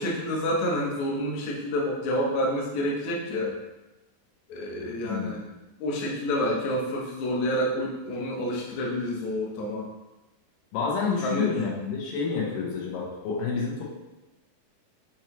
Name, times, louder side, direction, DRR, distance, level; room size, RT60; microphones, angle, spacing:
voice 1, 0.0-3.6 4.5-5.4 5.8-9.9 11.2-11.7 12.4-12.6, equal, 70° left, -2 dB, 2.0 m, -28 dB
voice 2, 5.0-5.4 10.7-13.8, left 5 dB, 90° left, -3 dB, 2.7 m, -29 dB
6.2 x 2.9 x 2.9 m, 1.0 s
omnidirectional pair, 3.9 m